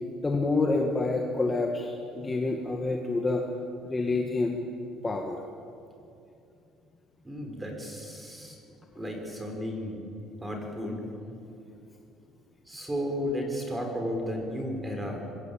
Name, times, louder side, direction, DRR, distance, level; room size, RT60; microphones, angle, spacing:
voice 1, 0.2-3.4 3.8-4.6 5.0-5.4, left 3 dB, 15° left, 1 dB, 1.9 m, -27 dB
voice 2, 7.2-8.6 9.0-10.0 10.4-11.0 12.7-15.2, equal, 10° right, 2 dB, 5.0 m, -33 dB
25.5 x 21.5 x 8.8 m, 2.6 s
cardioid pair, 150°, 0 cm